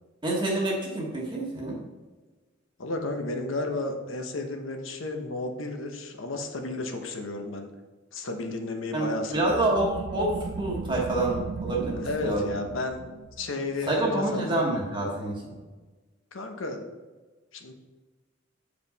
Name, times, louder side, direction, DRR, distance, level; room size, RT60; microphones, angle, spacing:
voice 1, 0.2-1.8 8.9-12.5 13.9-15.5, right 2 dB, 25° right, -3 dB, 1.3 m, -27 dB
voice 2, 2.8-7.7 8.1-9.7 12.0-13.0 13.4-14.6 16.3-16.8 17.5-17.7, left 2 dB, 90° left, 4 dB, 1.0 m, -33 dB
sound 1, 9.4-14.7, right 4 dB, 50° right, 0.3 m, -37 dB
7.4 x 4.9 x 4.0 m, 1.3 s
head